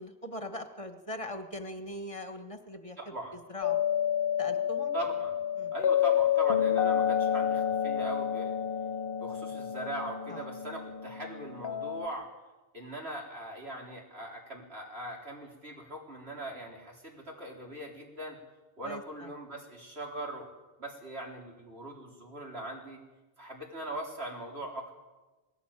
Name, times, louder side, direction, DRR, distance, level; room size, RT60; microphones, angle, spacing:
voice 1, 0.0-3.1 3.5-3.8 4.4-4.9 5.6-5.7 10.3-10.4 18.8-19.3, left 1 dB, 30° left, 7 dB, 1.4 m, -41 dB
voice 2, 3.0-3.3 4.9-5.4 5.7-8.6 9.2-12.3 12.7-18.4 18.8-20.5 20.8-23.0 23.4-24.9, right 1 dB, 75° right, 0 dB, 4.3 m, -40 dB
sound 1, 3.6-12.1, left 9 dB, 65° left, 1.0 m, -29 dB
19.5 x 17.0 x 9.0 m, 1.2 s
omnidirectional pair, 1.1 m